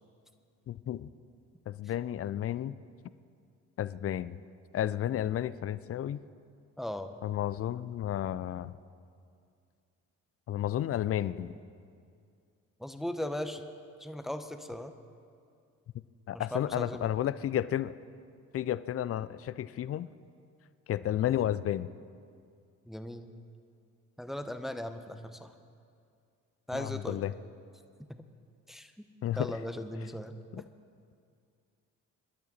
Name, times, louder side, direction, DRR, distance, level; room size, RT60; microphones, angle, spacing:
voice 1, 0.7-1.1 1.7-2.8 3.8-4.4 4.7-6.2 7.2-8.7 10.5-11.5 16.3-17.9 18.5-20.1 20.9-21.9 26.7-27.3 29.2-29.5 30.5-30.6, left 11 dB, 35° left, 17 dB, 0.5 m, -32 dB
voice 2, 6.8-7.1 12.8-13.6 14.0-14.9 16.3-17.1 22.9-23.3 24.2-25.5 26.7-27.2 28.1-28.2 28.7-29.1 29.3-30.6, left 1 dB, ahead, 8 dB, 1.0 m, -38 dB
23.5 x 12.0 x 4.2 m, 2.3 s
figure-of-eight pair, 50°, 44 cm